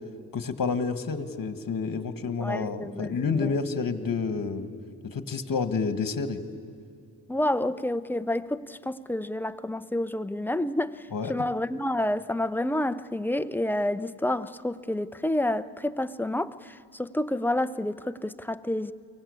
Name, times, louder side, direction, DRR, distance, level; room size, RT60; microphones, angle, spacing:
voice 1, 0.3-4.7 5.0-6.4 11.1-11.4, left 5 dB, 45° left, 10 dB, 1.7 m, -29 dB
voice 2, 2.4-3.1 3.4-3.5 7.3-18.9, left 1 dB, 5° left, 12 dB, 0.7 m, -29 dB
24.0 x 17.5 x 8.5 m, 2.4 s
supercardioid pair, 50°, 47 cm